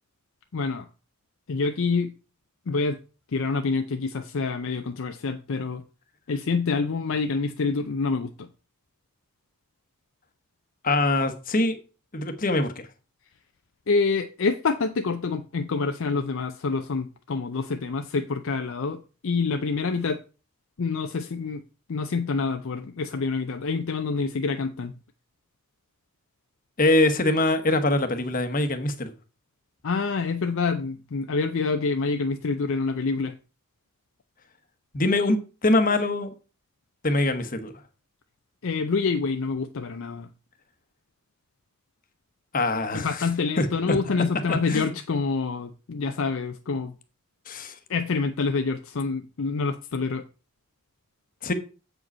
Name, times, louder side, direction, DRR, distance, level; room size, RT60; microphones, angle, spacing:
voice 1, 0.5-0.9 1.5-2.1 2.7-3.0 3.3-5.8 6.3-8.5 13.9-20.2 20.8-21.6 21.9-24.9 29.8-33.4 38.6-40.3 42.9-46.9 47.9-50.2, left 4 dB, 60° left, 0.5 m, -27 dB
voice 2, 10.8-11.8 12.1-12.9 26.8-29.1 34.9-36.3 37.0-37.7 42.5-43.1 43.6-44.0 44.5-45.0 47.5-47.8 51.4-51.5, left 2 dB, 40° left, 1.1 m, -23 dB
7.7 x 5.0 x 5.3 m
head